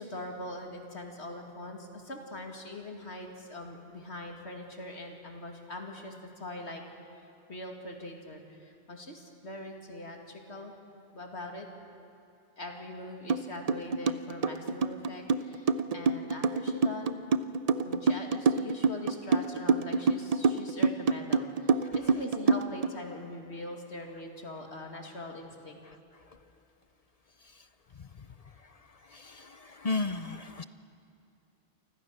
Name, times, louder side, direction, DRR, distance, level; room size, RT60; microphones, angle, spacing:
voice 1, 0.0-6.8 7.5-10.7 11.1-11.7 12.6-17.3 17.8-25.8, left 1 dB, 70° left, 2 dB, 2.8 m, -42 dB
sound 1, 13.3-13.4 13.7-22.9, right 4 dB, 40° right, 0.6 m, -26 dB
voice 2, 29.8-30.6, left 3 dB, 40° left, 11 dB, 0.7 m, -32 dB
29.0 x 25.0 x 6.6 m, 2.6 s
omnidirectional pair, 1.2 m